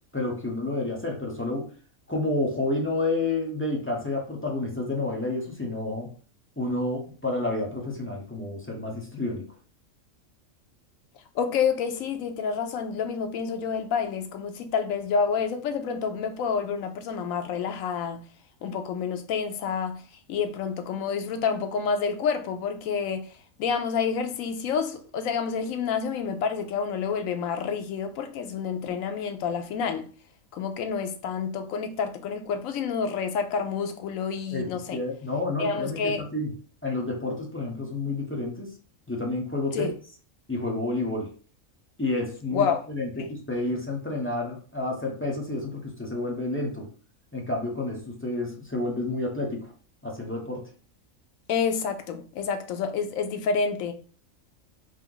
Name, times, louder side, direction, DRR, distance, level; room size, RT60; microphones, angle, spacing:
voice 1, 0.1-1.7 2.1-6.1 6.6-9.5 34.5-36.5 36.8-38.7 39.1-39.9 40.5-41.3 42.0-46.9 47.3-49.7 50.0-50.6, left 2 dB, 15° left, 0.6 m, -30 dB
voice 2, 11.3-18.2 18.6-20.0 20.3-23.3 23.6-30.1 30.5-35.0 35.6-36.2 39.7-39.9 42.5-42.8 43.2-43.3 51.5-53.9, left 6 dB, 80° left, 1.0 m, -28 dB
3.3 x 2.9 x 3.8 m
omnidirectional pair, 1.4 m